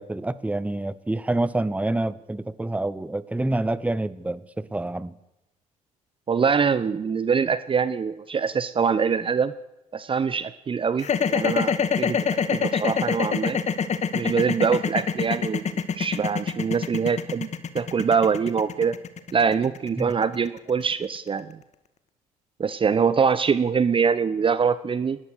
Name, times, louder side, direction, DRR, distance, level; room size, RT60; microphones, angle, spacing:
voice 1, 0.0-5.1 20.0-20.1, right 2 dB, 5° right, 17 dB, 1.1 m, -27 dB
voice 2, 6.3-9.5 9.9-12.2 12.5-13.6 14.1-17.5 17.7-19.0 19.3-21.6 22.6-25.2, right 6 dB, 30° right, 15 dB, 0.9 m, -24 dB
sound 1, 11.0-21.2, left 6 dB, 40° left, 1.9 m, -25 dB
24.0 x 19.5 x 6.6 m, 0.93 s
figure-of-eight pair, 50°, 18 cm